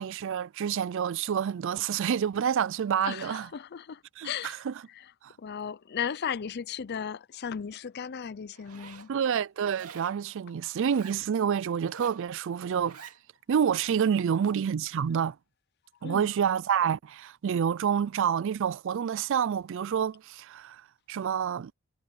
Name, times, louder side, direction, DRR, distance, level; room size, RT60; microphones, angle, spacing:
voice 1, 0.0-3.5 4.2-4.7 5.2-5.3 9.1-13.0 13.5-15.4 16.0-20.8 21.1-21.7, right 8 dB, 60° right, 0.4 m, -28 dB
voice 2, 3.0-5.1 5.4-9.1 16.0-16.3, left 7 dB, 50° left, 0.5 m, -36 dB
Zipper (clothing), 8.5-9.1 9.7-10.2 10.8-11.2 11.8-12.2 12.7-13.2, right 6 dB, 85° right, 2.4 m, -48 dB
head